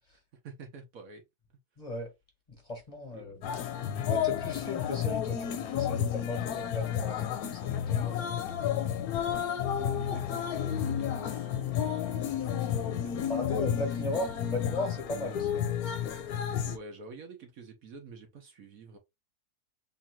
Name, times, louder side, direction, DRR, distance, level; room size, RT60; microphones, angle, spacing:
voice 1, 0.4-1.2 3.1-3.5 9.7-14.2 16.6-19.0, right 4 dB, 60° right, 1.3 m, -48 dB
voice 2, 1.8-2.1 2.6-3.4 4.1-8.5 13.3-15.7, left 1 dB, 25° left, 1.3 m, -37 dB
sound 1, 3.4-16.8, left 9 dB, 70° left, 1.1 m, -31 dB
3.8 x 2.7 x 4.3 m
omnidirectional pair, 1.7 m